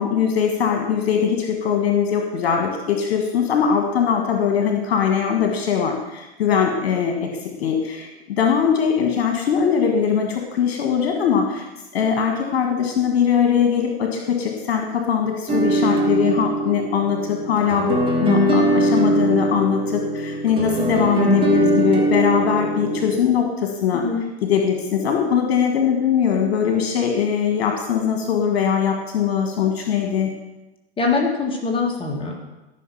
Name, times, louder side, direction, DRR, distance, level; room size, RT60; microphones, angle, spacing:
voice 1, 0.0-11.7 11.9-24.0 24.4-30.3, left 7 dB, 60° left, 2 dB, 1.6 m, -21 dB
sound 1, 15.5-23.2, right 1 dB, 15° right, 2.1 m, -21 dB
voice 2, 23.9-24.2 31.0-32.3, left 4 dB, 15° left, 0 dB, 1.8 m, -23 dB
13.5 x 5.9 x 5.7 m, 1.0 s
figure-of-eight pair, 95°, 31 cm